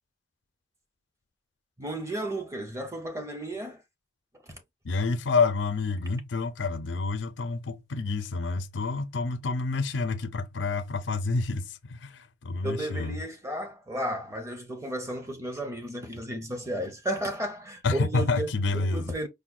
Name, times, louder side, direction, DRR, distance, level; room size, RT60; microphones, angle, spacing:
voice 1, 1.8-3.8 4.5-4.6 12.6-18.5 18.7-19.3, right 1 dB, 15° right, 0.7 m, -33 dB
voice 2, 4.8-13.2 17.8-19.1, left 3 dB, 80° left, 0.5 m, -28 dB
4.9 x 2.1 x 2.4 m
head